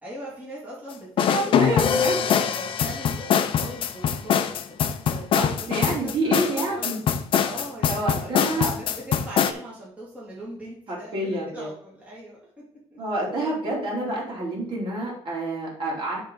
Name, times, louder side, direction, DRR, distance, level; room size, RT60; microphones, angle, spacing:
voice 1, 0.0-5.2 5.5-7.0 7.4-12.4 12.9-13.0, right 1 dB, 15° right, -6 dB, 2.2 m, -40 dB
sound 1, 1.2-9.5, left 8 dB, 50° left, 0.5 m, -23 dB
voice 2, 1.3-2.1 5.3-6.9 7.9-8.7 10.9-11.7 13.0-16.2, right 1 dB, 45° right, -3 dB, 3.0 m, -28 dB
9.7 x 3.8 x 3.7 m, 0.63 s
cardioid pair, 145°, 11 cm